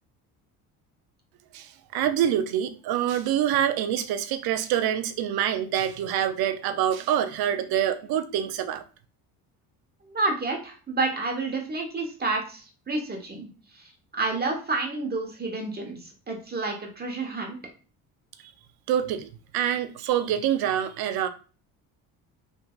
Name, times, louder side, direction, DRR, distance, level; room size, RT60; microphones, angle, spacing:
voice 1, 1.5-8.8 18.9-21.3, right 10 dB, 60° right, 0.6 m, -26 dB
voice 2, 10.1-13.5 13.7-17.6, right 3 dB, 20° right, 1.1 m, -30 dB
3.5 x 2.7 x 2.3 m
supercardioid pair, 75°, 43 cm